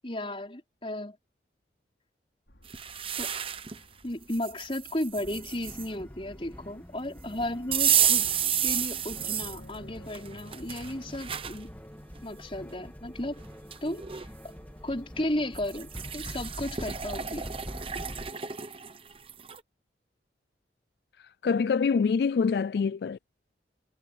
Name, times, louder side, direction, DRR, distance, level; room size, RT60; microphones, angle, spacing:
voice 1, 0.0-1.2 3.2-3.3 4.0-8.3 8.6-11.8 12.2-13.4 13.8-14.0 14.8-17.5, left 1 dB, 30° left, 5.1 m, -34 dB
sound 1, 2.5-16.0, left 1 dB, 85° left, 6.1 m, -56 dB
sound 2, 2.7-3.8 4.3-5.9 7.7-9.6 10.1-11.6 12.2-12.3 13.3-13.4 13.7-14.3 15.6-19.6, right 9 dB, 30° right, 1.0 m, -30 dB
sound 3, 5.1-18.3, equal, 10° left, 1.6 m, -45 dB
voice 2, 21.2-23.2, left 5 dB, 60° left, 0.3 m, -26 dB
head